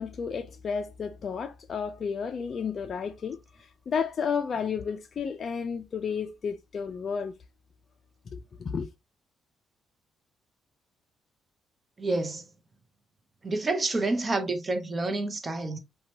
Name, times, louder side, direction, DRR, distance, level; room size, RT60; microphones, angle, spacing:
voice 1, 0.0-3.4 3.9-7.3 8.3-8.9, left 6 dB, 50° left, 0.3 m, -32 dB
voice 2, 12.0-12.4 13.4-15.8, right 2 dB, 30° right, 0.6 m, -28 dB
2.8 x 2.2 x 2.7 m
cardioid pair, 90°, 0 cm